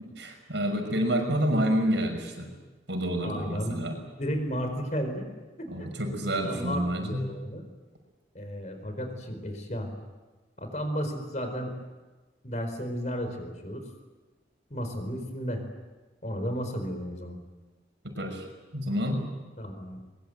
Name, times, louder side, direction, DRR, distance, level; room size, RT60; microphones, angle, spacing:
voice 1, 0.2-2.5 2.9-4.0 5.7-7.2 18.0-18.4 18.7-19.3, equal, 75° right, 4 dB, 6.0 m, -28 dB
voice 2, 3.2-3.7 4.2-5.3 5.6-5.9 6.4-7.6 8.3-9.9 10.6-11.7 12.4-13.9 14.7-15.6 16.2-17.4 19.6-20.0, equal, 40° left, 7 dB, 4.6 m, -33 dB
23.0 x 22.5 x 9.2 m, 1.2 s
head